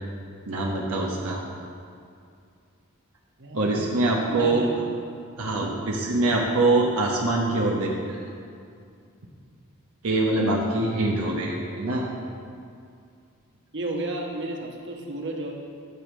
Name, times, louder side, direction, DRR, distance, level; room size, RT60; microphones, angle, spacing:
voice 1, 0.5-1.4 3.5-4.6 5.4-8.2 10.0-12.1, right 2 dB, 80° right, -2 dB, 1.1 m, -24 dB
voice 2, 3.4-3.8 4.3-4.8 11.0-12.0 13.7-15.5, right 2 dB, 55° right, 1 dB, 1.3 m, -33 dB
12.5 x 6.5 x 5.2 m, 2.4 s
head